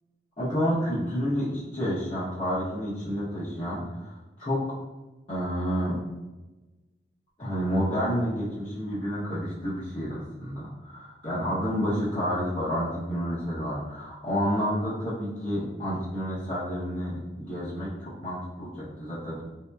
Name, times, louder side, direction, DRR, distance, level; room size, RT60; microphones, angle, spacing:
voice 1, 0.4-4.6 5.3-6.0 7.4-19.4, equal, 30° left, -11 dB, 0.8 m, -29 dB
4.1 x 2.8 x 2.2 m, 1.1 s
head